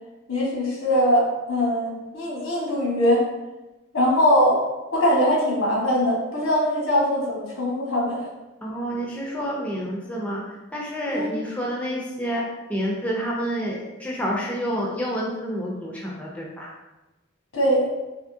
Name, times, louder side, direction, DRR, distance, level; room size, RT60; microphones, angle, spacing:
voice 1, 0.3-3.2 3.9-4.6 4.9-8.2 11.1-11.3 17.5-17.9, equal, 85° left, -4 dB, 1.1 m, -21 dB
voice 2, 8.6-12.4 12.7-16.7, equal, 5° left, -3 dB, 0.4 m, -29 dB
3.6 x 2.7 x 2.6 m, 1.1 s
head